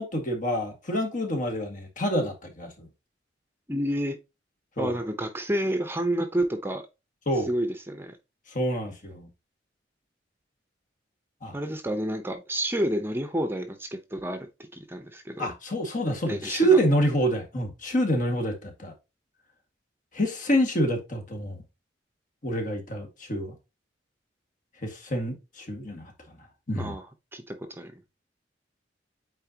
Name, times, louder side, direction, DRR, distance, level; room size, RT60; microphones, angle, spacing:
voice 1, 0.0-2.9 4.8-4.9 7.3-7.5 8.5-9.3 11.4-11.6 15.4-18.9 20.1-21.6 22.4-23.6 24.8-26.4 26.7-26.9, right 1 dB, 45° left, 2.1 m, -27 dB
voice 2, 3.7-4.2 4.8-6.8 7.5-8.2 11.5-14.5 14.9-15.5 16.3-16.8 26.7-27.1 27.3-28.0, right 1 dB, 15° right, 0.9 m, -29 dB
8.9 x 4.0 x 2.9 m
head